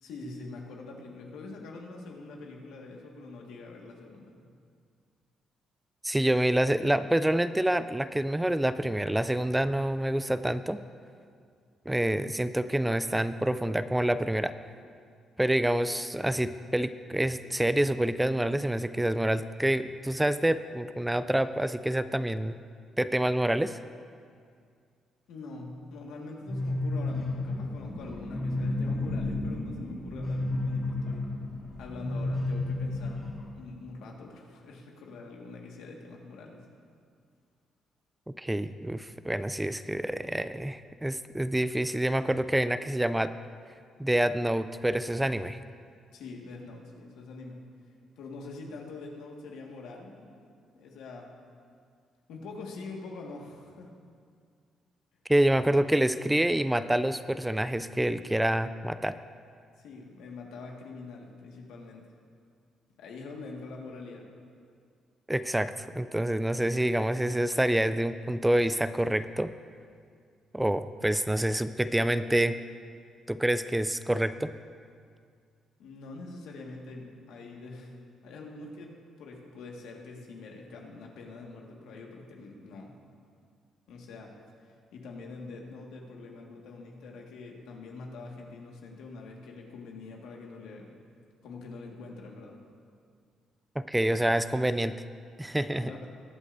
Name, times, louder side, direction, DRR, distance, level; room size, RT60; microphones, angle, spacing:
voice 1, 0.0-4.4 25.3-31.3 31.8-36.7 46.1-47.7 48.2-50.5 50.7-51.3 52.3-53.9 59.8-62.1 63.0-64.3 75.8-77.9 78.2-82.9 83.9-84.3 84.7-90.9 91.4-92.6 95.8-96.1, left 3 dB, 85° left, 0 dB, 1.7 m, -44 dB
voice 2, 6.0-10.8 11.9-14.5 15.4-22.5 23.0-23.8 38.4-43.3 44.0-45.6 55.3-59.2 65.3-69.5 70.5-72.6 73.3-74.5 93.9-95.0 95.4-95.9, right 1 dB, 10° right, 12 dB, 0.3 m, -27 dB
sound 1, 26.5-33.5, left 2 dB, 30° left, 2.7 m, -32 dB
20.5 x 8.1 x 2.6 m, 2.2 s
cardioid pair, 90°, 0 cm